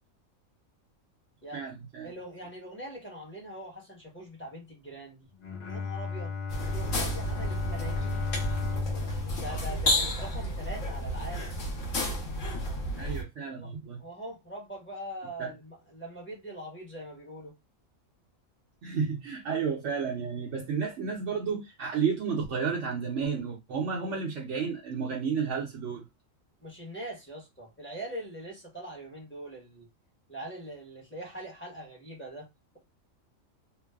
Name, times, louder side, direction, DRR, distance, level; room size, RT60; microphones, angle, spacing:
voice 1, 1.5-2.1 13.0-14.0 15.4-15.5 18.8-26.0, right 6 dB, 65° right, 0.9 m, -32 dB
voice 2, 2.0-5.3 5.7-6.4 6.6-8.3 8.8-11.5 13.6-13.7 14.0-17.5 19.5-19.6 26.6-29.9 30.3-32.5, right 1 dB, 10° left, 0.7 m, -42 dB
Bowed string instrument, 5.3-10.7, left 5 dB, 90° left, 0.3 m, -35 dB
sound 1, 6.5-13.2, equal, 65° left, 1.2 m, -32 dB
3.0 x 2.0 x 2.2 m
omnidirectional pair, 1.4 m